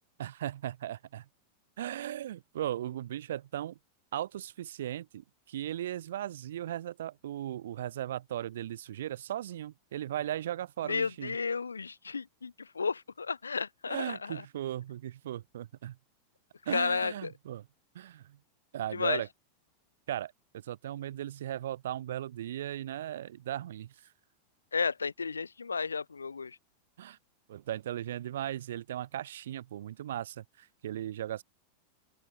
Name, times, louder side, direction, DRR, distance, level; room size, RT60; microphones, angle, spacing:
voice 1, 0.2-1.2 1.8-3.8 4.1-11.3 13.9-16.0 16.6-17.6 17.9-18.4 18.7-19.3 20.1-23.9 27.0-27.2 27.5-31.4, right 12 dB, 60° right, 1.4 m, -37 dB
voice 2, 10.8-14.5 16.7-17.3 18.9-19.2 24.7-26.6, left 5 dB, 75° left, 0.3 m, -33 dB
open air
figure-of-eight pair, 90°, 0 cm